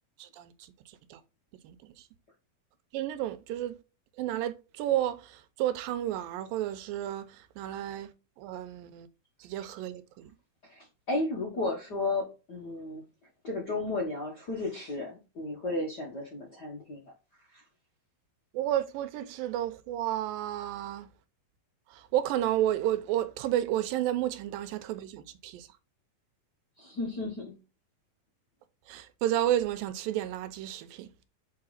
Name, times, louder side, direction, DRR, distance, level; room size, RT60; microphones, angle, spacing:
voice 1, 0.2-0.5 1.1-1.2 1.6-2.0 2.9-3.8 4.2-8.1 8.4-9.1 9.4-10.3 18.5-21.1 21.9-25.7 28.9-31.1, right 12 dB, 80° right, 2.3 m, -31 dB
voice 2, 10.6-13.0 13.4-17.1 17.5-17.6 26.8-27.6, left 2 dB, 80° left, 0.9 m, -34 dB
6.6 x 4.5 x 4.0 m
omnidirectional pair, 4.2 m